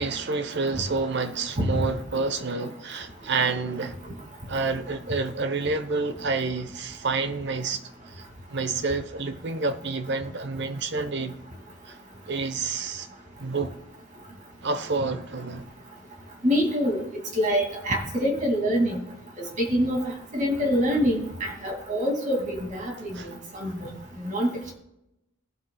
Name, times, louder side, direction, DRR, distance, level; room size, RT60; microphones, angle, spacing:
voice 1, 0.0-4.0 4.5-7.8 8.1-8.2 8.5-11.4 11.9-12.0 12.3-13.1 13.4-13.8 14.6-15.7 23.1-23.3, right 4 dB, 55° right, 1.0 m, -28 dB
voice 2, 16.4-17.0 17.4-19.0 19.4-23.9 24.2-24.7, equal, 35° right, 2.5 m, -26 dB
20.0 x 7.7 x 2.3 m
head